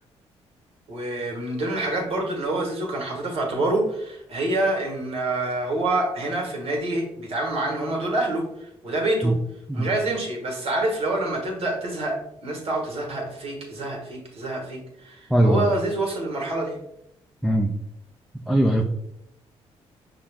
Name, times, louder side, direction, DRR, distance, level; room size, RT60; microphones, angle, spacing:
voice 1, 0.9-9.4 9.7-16.8, right 2 dB, 60° right, -1 dB, 1.5 m, -27 dB
voice 2, 15.3-15.6 17.4-17.7 18.5-18.8, right 1 dB, ahead, 3 dB, 0.4 m, -20 dB
5.6 x 2.4 x 3.5 m, 0.78 s
cardioid pair, 80°, 11 cm